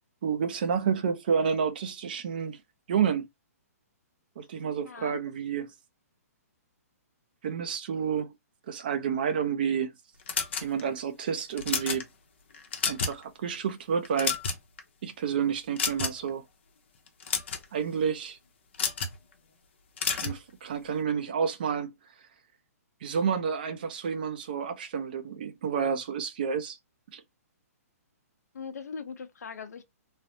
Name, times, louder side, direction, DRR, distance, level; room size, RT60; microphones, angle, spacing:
voice 1, 0.2-2.6 2.9-3.3 4.4-5.7 7.4-8.3 8.7-9.9 10.6-12.1 12.9-14.4 15.0-16.4 17.7-18.4 20.1-21.9 23.0-26.8 27.1-27.2, right 7 dB, 35° right, 0.5 m, -29 dB
voice 2, 4.8-5.2 28.5-29.8, left 5 dB, 85° left, 0.7 m, -40 dB
sound 1, 10.3-11.0 11.5-12.0 12.5-13.2 13.5-13.7 14.1-14.8 15.8-16.3 17.1-17.6 18.7-19.2 20.0-20.4, left 6 dB, 45° left, 0.6 m, -30 dB
3.2 x 2.0 x 2.6 m
hypercardioid pair, 175°, 9 cm